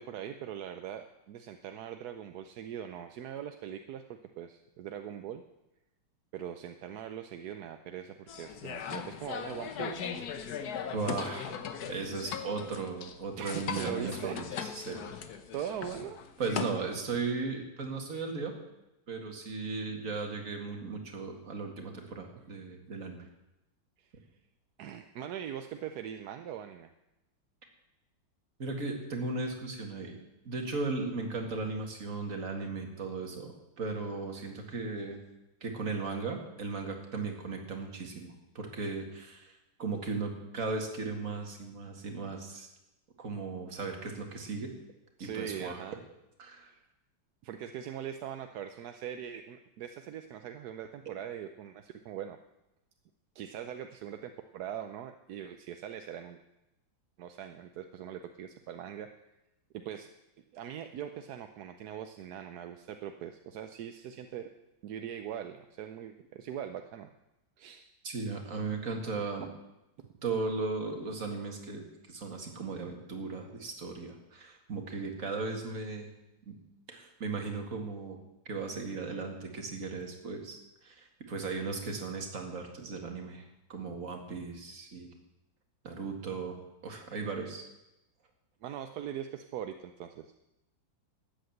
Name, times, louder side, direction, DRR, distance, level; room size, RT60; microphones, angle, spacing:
voice 1, 0.0-4.0 4.4-5.4 6.3-10.2 13.4-14.4 15.5-16.2 24.0-24.1 24.8-26.9 45.2-46.0 46.6-46.8 47.4-52.4 53.3-56.4 57.2-59.1 59.7-60.1 60.5-64.5 64.8-67.1 67.6-67.8 88.6-90.3, right 9 dB, 65° right, 7 dB, 1.1 m, -41 dB
sound 1, 8.3-16.7, left 7 dB, 60° left, 1.3 m, -39 dB
voice 2, 10.9-11.6 11.8-15.0 16.4-18.6 19.1-23.2 28.6-30.2 30.5-35.2 35.6-42.7 43.2-44.7 45.2-45.8 46.4-46.7 51.1-51.2 68.0-69.5 70.2-76.1 76.5-76.6 76.9-78.2 78.5-85.1 85.8-86.6 86.8-87.7, right 4 dB, 45° right, 3 dB, 2.3 m, -37 dB
13.0 x 8.8 x 7.9 m, 0.93 s
omnidirectional pair, 2.1 m